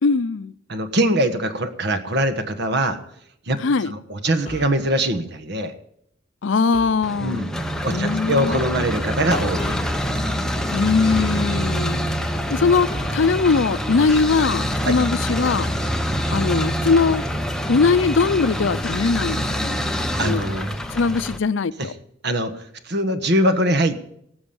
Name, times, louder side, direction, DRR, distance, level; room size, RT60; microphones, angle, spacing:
voice 1, 0.0-0.5 3.6-3.9 6.4-7.5 7.9-8.6 10.7-15.7 16.3-17.2 17.7-19.8 20.2-20.4 20.9-21.9, left 4 dB, 80° left, 0.5 m, -21 dB
voice 2, 0.7-3.0 3.5-3.6 3.8-5.7 7.2-7.5 7.8-9.8 14.8-15.0 20.2-20.7 21.8-21.9 22.2-24.1, right 1 dB, 60° right, 1.4 m, -22 dB
sound 1, 4.5-4.8 6.7-7.1 8.3-8.5 9.6-10.0 11.1-11.8 12.9-13.3, equal, 35° left, 3.4 m, -37 dB
sound 2, 7.0-21.4, equal, 5° left, 1.0 m, -25 dB
19.0 x 7.1 x 7.0 m
head